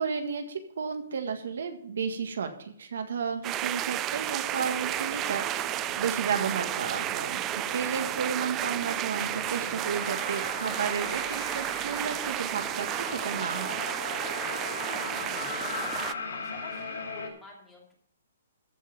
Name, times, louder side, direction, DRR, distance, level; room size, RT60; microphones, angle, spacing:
voice 1, 0.0-13.8, right 6 dB, 75° right, 6 dB, 1.7 m, -33 dB
sound 1, 3.4-16.1, right 13 dB, 20° right, 0.3 m, -32 dB
sound 2, 4.5-17.3, left 4 dB, 90° left, 3.0 m, -39 dB
voice 2, 14.7-17.9, left 2 dB, 5° left, -3 dB, 2.5 m, -50 dB
14.5 x 5.7 x 6.8 m, 0.64 s
hypercardioid pair, 165°, 0 cm